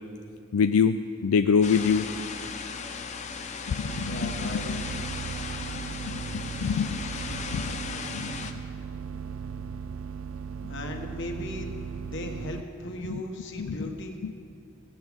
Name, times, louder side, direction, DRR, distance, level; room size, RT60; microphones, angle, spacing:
voice 1, 0.5-2.1 3.7-4.8 6.0-6.2 6.6-7.0 7.5-7.6 8.1-8.3 13.6-13.7, left 6 dB, 80° left, 9 dB, 0.4 m, -25 dB
sound 1, 1.6-8.5, left 5 dB, 30° left, 0.7 m, -36 dB
sound 2, 3.9-12.6, right 6 dB, 65° right, 0.3 m, -37 dB
voice 2, 4.0-5.0 10.7-11.8 12.0-14.1, left 1 dB, 55° left, 3 dB, 1.4 m, -37 dB
17.0 x 15.5 x 3.6 m, 2.3 s
head